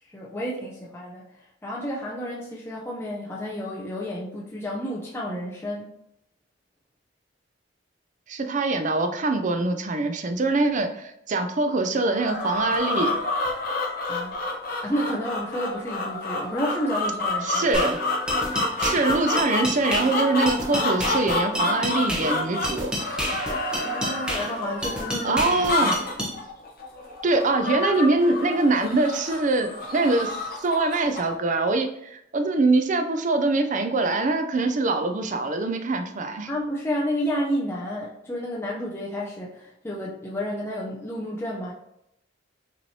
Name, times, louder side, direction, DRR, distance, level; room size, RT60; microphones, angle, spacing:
voice 1, 0.1-5.9 14.1-14.3 14.8-17.7 23.8-26.0 36.5-41.7, equal, 15° left, -5 dB, 0.5 m, -31 dB
voice 2, 8.3-13.2 17.4-18.0 18.8-22.9 25.2-26.0 27.2-36.5, right 2 dB, 40° right, 7 dB, 0.5 m, -23 dB
sound 1, 12.1-31.4, left 2 dB, 50° left, 0.8 m, -29 dB
sound 2, 17.7-26.3, equal, 5° right, 0.9 m, -30 dB
5.9 x 3.1 x 2.7 m, 0.79 s
head